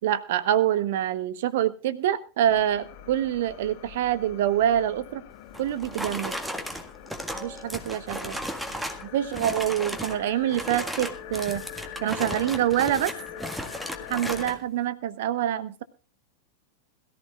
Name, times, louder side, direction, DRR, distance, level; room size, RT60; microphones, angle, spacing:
voice 1, 0.0-5.2 5.6-6.3 7.4-8.4 9.0-11.6 12.0-13.1 14.1-15.8, right 11 dB, 55° right, 17 dB, 1.0 m, -26 dB
sound 1, 2.4-14.5, left 10 dB, 50° left, 1.6 m, -43 dB
sound 2, 5.5-9.0 9.3-10.2 10.5-14.6, right 1 dB, 5° right, 1.7 m, -35 dB
22.0 x 14.0 x 2.4 m, 0.36 s
figure-of-eight pair, 90°, 0 cm